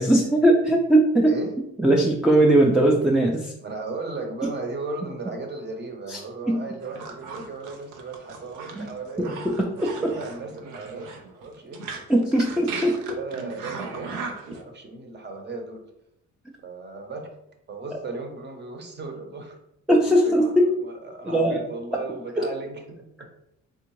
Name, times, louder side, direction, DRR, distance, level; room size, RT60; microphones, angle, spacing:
voice 1, 0.0-1.3 1.8-3.5 6.1-6.2 6.5-6.6 8.7-8.9 9.4-10.1 12.1-13.2 19.9-20.7 21.3-21.6, right 1 dB, ahead, -1 dB, 0.3 m, -19 dB
voice 2, 3.6-9.7 10.0-12.2 13.1-14.1 14.5-15.8 16.6-17.3 17.7-19.6 20.1-20.5 20.8-23.3, right 3 dB, 35° right, 3 dB, 0.8 m, -36 dB
sound 1, 6.8-14.6, right 4 dB, 85° right, 0.6 m, -37 dB
3.5 x 2.5 x 3.0 m, 0.81 s
cardioid pair, 90°, 30 cm